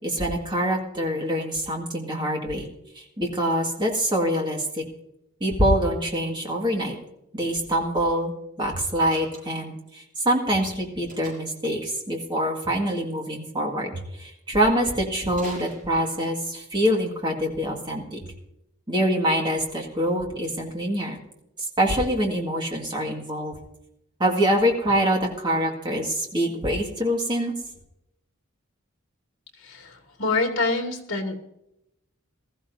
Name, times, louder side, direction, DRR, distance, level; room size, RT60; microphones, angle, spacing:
voice 1, 0.0-2.7 3.0-4.8 5.4-7.0 7.3-18.2 18.9-21.2 21.8-23.6 24.2-27.5, equal, 20° right, 1 dB, 1.9 m, -25 dB
Slam, 9.0-9.8 11.1-11.6 15.3-16.4, right 2 dB, 35° right, 6.5 m, -44 dB
voice 2, 29.6-31.4, left 3 dB, 60° left, 3 dB, 2.4 m, -26 dB
20.0 x 14.5 x 2.7 m, 0.83 s
head